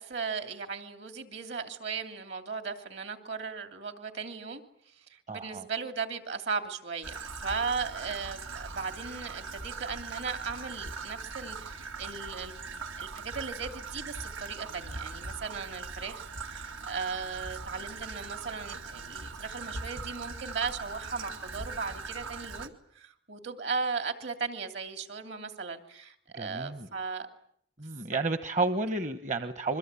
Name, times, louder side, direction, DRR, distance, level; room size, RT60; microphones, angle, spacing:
voice 1, 0.0-4.6 4.9-27.3, right 5 dB, 65° right, 7 dB, 3.0 m, -37 dB
voice 2, 5.3-5.7 26.3-26.9 27.8-29.8, right 3 dB, 40° right, 9 dB, 1.1 m, -31 dB
Traffic noise roadway noise / Trickle dribble, 7.0-22.7, right 4 dB, 90° right, 2.2 m, -41 dB
27.5 x 23.0 x 8.4 m, 0.66 s
head